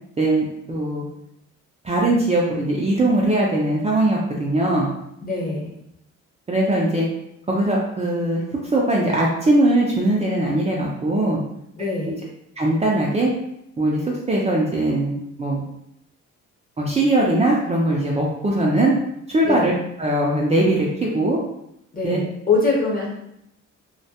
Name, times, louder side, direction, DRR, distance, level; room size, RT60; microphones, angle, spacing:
voice 1, 0.2-1.1 1.8-4.9 6.5-7.1 7.5-11.4 12.1-12.2 12.6-13.3 13.8-15.6 16.8-18.9 19.3-19.7 20.0-21.4 22.0-22.2, right 1 dB, 20° right, -4 dB, 0.4 m, -20 dB
voice 2, 5.2-5.7 11.8-12.2 19.4-19.7 21.9-23.1, left 3 dB, 30° left, -3 dB, 0.9 m, -23 dB
2.2 x 2.1 x 2.7 m, 0.78 s
cardioid pair, 90°, 30 cm